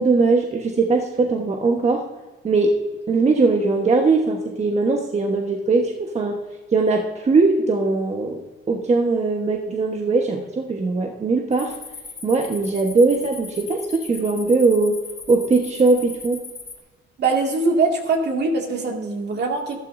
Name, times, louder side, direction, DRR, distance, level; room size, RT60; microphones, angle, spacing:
voice 1, 0.0-2.0 2.4-2.7 3.1-6.4 6.7-8.4 8.7-11.7 12.2-14.9 15.3-16.4, right 3 dB, 35° right, 1 dB, 1.2 m, -20 dB
sound 1, 11.5-16.8, left 4 dB, 30° left, 2.7 m, -38 dB
voice 2, 17.2-19.8, right 3 dB, 60° right, 1 dB, 2.2 m, -22 dB
12.5 x 12.0 x 2.7 m, 1.2 s
cardioid pair, 90°, 20 cm